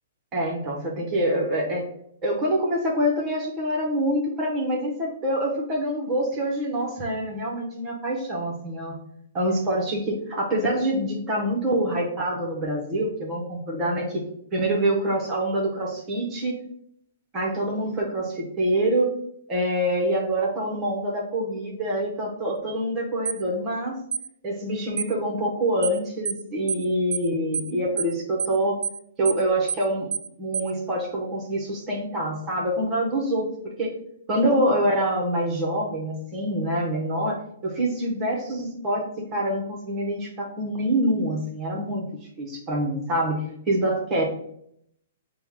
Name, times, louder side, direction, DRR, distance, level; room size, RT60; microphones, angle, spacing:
voice 1, 0.3-1.8 2.2-9.0 9.3-14.2 14.5-16.6 17.3-19.1 19.5-23.9 24.4-28.8 29.2-30.1 30.4-33.9 34.3-39.0 39.3-42.1 42.4-44.2, right 1 dB, 15° right, -1 dB, 0.7 m, -25 dB
sound 1, 23.2-23.4 24.1-24.3 25.0-25.1 25.8-26.0 26.2-26.4 26.7-26.8 27.1-27.3 27.5-27.7 28.0-28.1 28.4-28.6 28.8-29.0 29.2-29.4 29.7-29.8 30.1-30.3 30.5-30.7, right 7 dB, 70° right, 0.3 m, -28 dB
6.0 x 2.0 x 3.5 m, 0.71 s
hypercardioid pair, 175°, 0 cm